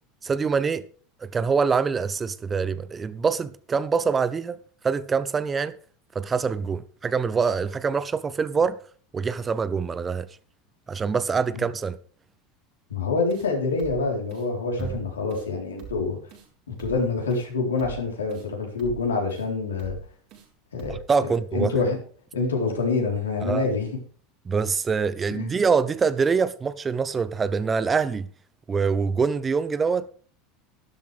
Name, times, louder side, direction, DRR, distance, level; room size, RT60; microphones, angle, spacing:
voice 1, 0.2-0.8 1.2-4.6 4.8-5.7 6.1-8.8 9.1-10.3 10.9-12.0 14.8-14.9 20.9-21.7 23.4-23.7 24.5-28.3 28.7-30.1, right 5 dB, 25° right, 0.8 m, -24 dB
voice 2, 12.9-16.2 16.7-20.0 20.7-21.0 21.5-22.0 22.3-23.9 25.3-25.6, left 4 dB, 80° left, 4.0 m, -26 dB
sound 1, 13.3-13.5 13.8-14.0 14.3-14.5 14.8-15.0 15.3-15.5 15.8-16.0 16.3-16.5 16.8-17.0 17.3-17.5 17.8-18.0 18.3-18.5 18.8-19.0 19.3-19.5 19.8-20.0 20.3-20.5 20.8-21.0, right 8 dB, 55° right, 5.8 m, -41 dB
12.5 x 12.0 x 3.5 m
figure-of-eight pair, 80°, 0 cm